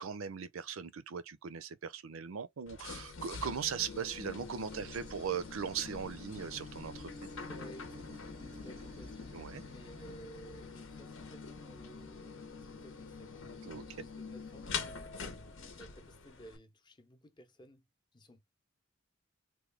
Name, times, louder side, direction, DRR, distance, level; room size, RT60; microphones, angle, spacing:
voice 1, 0.0-7.3 9.3-9.6 13.7-14.1, right 7 dB, 85° right, 0.5 m, -39 dB
sound 1, 2.7-16.6, left 4 dB, 75° left, 0.9 m, -45 dB
sound 2, 4.6-10.1, right 4 dB, 30° right, 0.4 m, -58 dB
voice 2, 7.5-13.6 13.9-18.4, right 1 dB, 20° left, 0.6 m, -56 dB
3.0 x 2.2 x 3.3 m
head